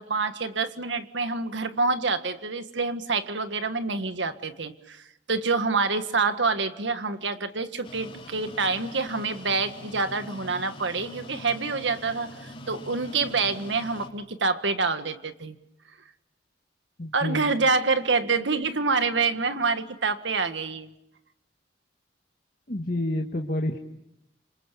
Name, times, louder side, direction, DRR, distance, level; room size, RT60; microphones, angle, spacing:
voice 1, 0.0-15.6 17.1-20.9, right 4 dB, 85° right, 9 dB, 1.7 m, -27 dB
sound 1, 7.8-14.1, left 1 dB, 30° left, 3.8 m, -43 dB
voice 2, 17.0-17.5 22.7-23.8, left 1 dB, 50° left, 3 dB, 1.6 m, -29 dB
28.5 x 26.5 x 6.9 m, 0.83 s
head